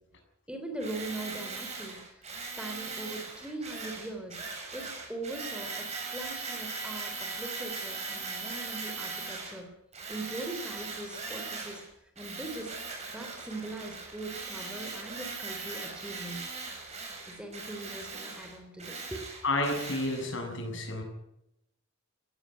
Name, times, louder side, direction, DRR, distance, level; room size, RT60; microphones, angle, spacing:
voice 1, 0.5-2.0 2.6-4.4 4.7-9.7 10.1-11.8 12.2-12.7 13.1-16.5 17.3-19.2, right 2 dB, 5° right, 5 dB, 3.4 m, -41 dB
Tools, 0.8-9.6 9.9-11.9 12.2-20.3, right 4 dB, 35° right, 7.9 m, -39 dB
voice 2, 19.4-21.0, left 2 dB, 60° left, 3 dB, 7.3 m, -30 dB
17.5 x 17.0 x 9.3 m, 0.83 s
head